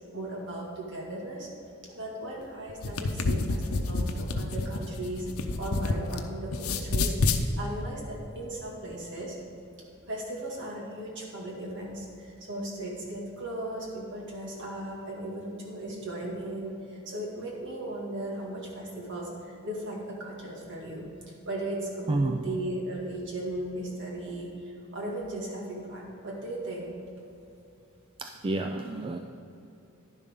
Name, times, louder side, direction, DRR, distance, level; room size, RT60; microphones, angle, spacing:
voice 1, 0.1-1.5 1.9-5.3 5.6-9.4 10.1-21.1 21.5-26.9, right 1 dB, 60° right, -3 dB, 2.3 m, -37 dB
sound 1, 2.7-6.2 6.5-7.4, left 3 dB, 85° left, 0.7 m, -28 dB
voice 2, 22.1-22.4 28.2-29.2, right 2 dB, 25° right, 5 dB, 0.4 m, -29 dB
10.5 x 10.5 x 3.7 m, 2.8 s
head